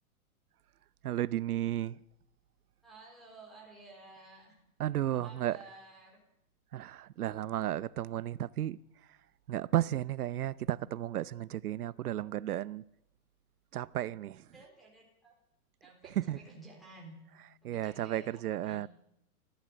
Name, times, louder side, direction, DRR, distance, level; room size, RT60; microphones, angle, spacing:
voice 1, 1.0-2.0 4.8-5.6 6.7-8.8 9.5-12.8 13.7-14.5 16.2-16.4 17.6-18.9, right 12 dB, 80° right, 0.8 m, -33 dB
voice 2, 2.8-4.6 5.1-6.2 14.5-15.3 15.8-17.2 17.6-18.8, right 3 dB, ahead, 3.9 m, -53 dB
29.0 x 14.5 x 7.8 m
hypercardioid pair, 175°, 44 cm